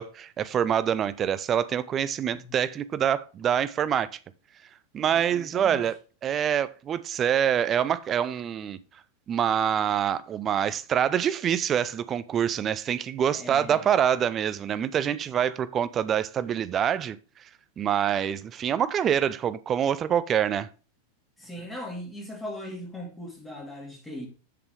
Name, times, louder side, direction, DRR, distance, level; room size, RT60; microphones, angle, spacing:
voice 1, 0.0-4.1 4.9-5.9 6.2-8.8 9.3-17.2 17.8-20.7, right 9 dB, 25° right, 0.5 m, -25 dB
voice 2, 2.3-2.6 5.0-5.8 13.3-13.9 21.4-24.3, left 1 dB, 10° left, 2.6 m, -39 dB
7.8 x 6.8 x 3.3 m
figure-of-eight pair, 90°, 0 cm